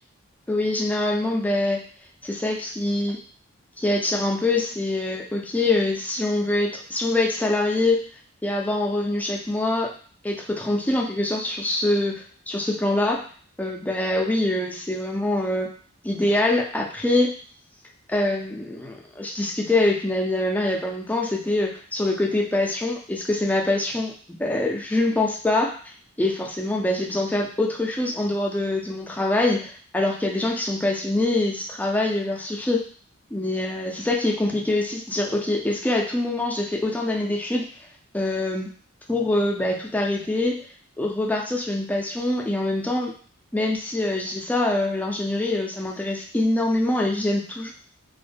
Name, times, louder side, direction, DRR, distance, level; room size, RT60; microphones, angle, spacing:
voice 1, 0.5-1.8 2.2-3.2 3.8-8.0 8.4-9.9 10.2-13.2 13.6-15.7 16.0-17.3 18.1-25.7 26.2-32.8 33.3-37.7 38.1-38.7 39.1-40.6 41.0-43.1 43.5-47.7, left 2 dB, 10° left, 0 dB, 0.4 m, -24 dB
2.2 x 2.0 x 3.3 m, 0.44 s
head